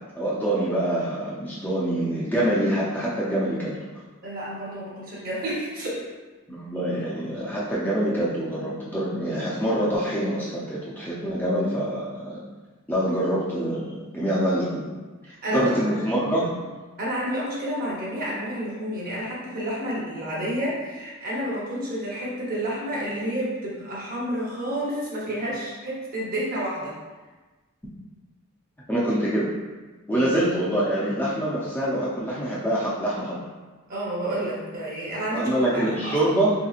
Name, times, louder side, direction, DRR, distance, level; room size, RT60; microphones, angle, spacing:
voice 1, 0.1-3.8 6.5-12.4 12.9-14.9 15.5-16.5 28.9-29.5 30.1-33.4 35.3-36.5, right 1 dB, 10° left, -8 dB, 0.4 m, -25 dB
voice 2, 4.2-6.0 15.2-15.7 16.1-16.2 17.0-27.0 30.1-30.2 33.9-35.5 35.8-36.1, equal, 40° right, -5 dB, 0.8 m, -30 dB
3.3 x 2.8 x 2.3 m, 1.3 s
head